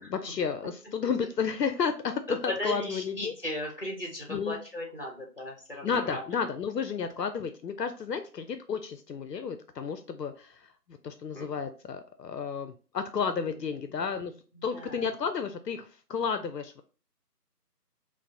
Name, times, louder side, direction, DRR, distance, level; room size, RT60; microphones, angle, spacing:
voice 1, 0.0-3.3 4.3-4.6 5.8-10.7 11.0-14.3 14.6-16.8, left 6 dB, 80° left, 8 dB, 0.6 m, -32 dB
voice 2, 2.5-6.2 11.3-11.5 13.4-13.5 13.9-14.0 14.5-15.0, left 1 dB, 35° left, 0 dB, 0.9 m, -36 dB
4.6 x 2.0 x 2.8 m, 0.38 s
figure-of-eight pair, 175°, 49 cm